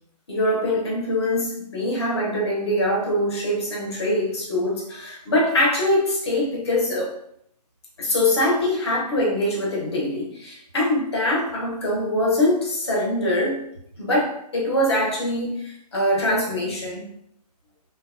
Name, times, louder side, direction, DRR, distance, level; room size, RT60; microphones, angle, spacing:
voice 1, 0.3-7.2 8.0-13.6 14.0-17.1, left 1 dB, 40° left, -4 dB, 0.7 m, -23 dB
2.7 x 2.1 x 2.4 m, 0.71 s
hypercardioid pair, 175°, 21 cm